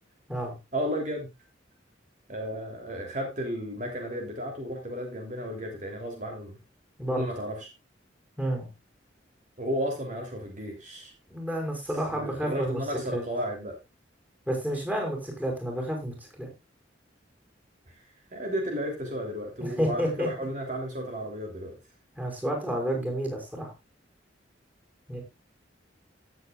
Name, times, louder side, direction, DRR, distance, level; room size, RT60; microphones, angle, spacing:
voice 1, 0.7-1.3 2.3-6.6 7.1-7.7 9.6-11.1 12.1-13.8 17.9-21.8, equal, 40° right, 2 dB, 3.2 m, -33 dB
voice 2, 8.4-8.7 11.3-12.8 13.1-13.2 14.5-16.5 19.6-20.3 22.2-23.7 25.1-25.2, equal, 10° right, 1 dB, 5.5 m, -30 dB
17.5 x 8.4 x 2.4 m, 0.24 s
head